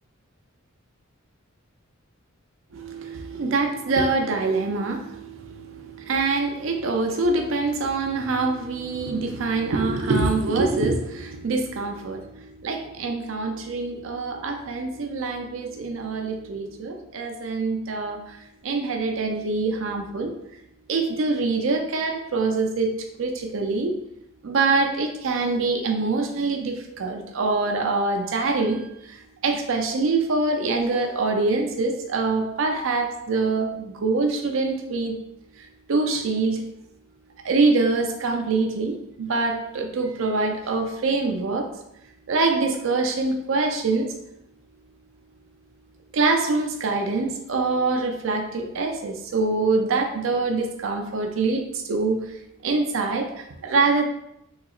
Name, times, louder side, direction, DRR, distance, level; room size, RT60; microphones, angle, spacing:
voice 1, 2.7-18.4 18.6-20.3 20.9-22.9 23.2-24.0 24.4-35.2 35.6-36.6 37.4-41.7 42.3-44.1 46.1-54.0, right 3 dB, 65° right, 4 dB, 0.5 m, -25 dB
3.9 x 2.8 x 2.4 m, 0.81 s
head